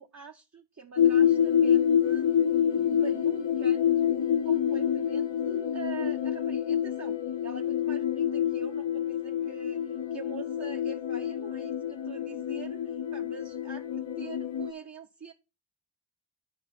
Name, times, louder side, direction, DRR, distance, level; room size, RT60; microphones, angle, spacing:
voice 1, 0.0-15.3, right 6 dB, 35° right, 0.8 m, -45 dB
sound 1, 1.0-14.7, left 9 dB, 70° left, 0.7 m, -27 dB
11.0 x 4.6 x 4.1 m
cardioid pair, 40°, 46 cm